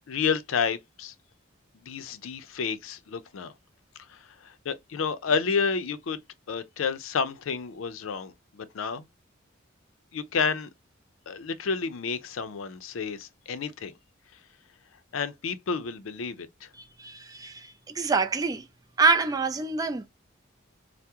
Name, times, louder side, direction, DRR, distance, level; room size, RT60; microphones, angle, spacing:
voice 1, 0.1-1.1 1.7-3.5 4.1-6.2 6.5-9.0 10.1-10.7 11.3-13.9 15.1-16.7, left 5 dB, 80° left, 0.5 m, -30 dB
voice 2, 17.0-18.6 19.0-20.1, right 4 dB, 20° right, 0.3 m, -26 dB
3.4 x 2.0 x 2.8 m
head